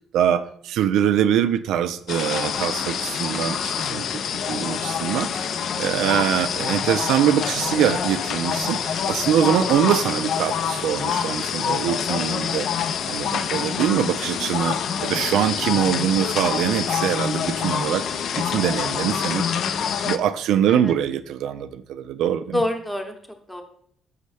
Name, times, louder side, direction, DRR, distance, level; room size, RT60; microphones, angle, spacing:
voice 1, 0.1-4.2 4.5-12.7 13.1-19.4 20.0-22.6, right 9 dB, 80° right, 11 dB, 0.3 m, -23 dB
sound 1, 2.1-20.2, left 7 dB, 55° left, 0.4 m, -26 dB
voice 2, 22.5-23.1 23.5-23.6, left 1 dB, 5° left, 4 dB, 0.8 m, -27 dB
6.2 x 5.5 x 3.3 m, 0.64 s
cardioid pair, 135°, 0 cm